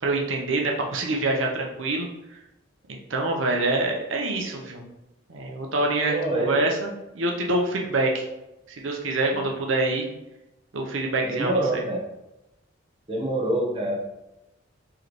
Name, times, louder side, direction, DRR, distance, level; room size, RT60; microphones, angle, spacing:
voice 1, 0.0-2.1 2.9-4.9 5.3-8.2 8.8-10.1 10.7-11.8, right 2 dB, 90° right, 1 dB, 0.7 m, -26 dB
voice 2, 6.1-6.6 11.3-12.0 13.1-13.9, right 1 dB, 25° right, -2 dB, 0.8 m, -25 dB
4.6 x 3.2 x 3.0 m, 0.93 s
head